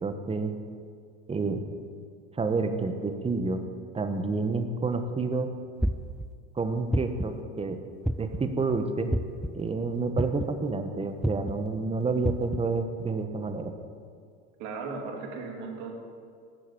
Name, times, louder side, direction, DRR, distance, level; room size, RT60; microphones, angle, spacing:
voice 1, 0.0-0.6 1.3-1.6 2.3-3.7 3.9-5.5 6.5-7.8 8.2-9.2 9.5-13.7, right 3 dB, 20° right, 8 dB, 1.4 m, -29 dB
sound 1, 5.8-6.2 6.9-7.4 8.0-8.5 9.1-9.5 10.2-10.6 11.2-11.5 12.2-12.6, right 1 dB, ahead, 0.4 m, -27 dB
voice 2, 14.6-15.9, right 4 dB, 70° right, 1 dB, 2.7 m, -36 dB
13.5 x 8.6 x 7.8 m, 2.2 s
supercardioid pair, 100°, 30 cm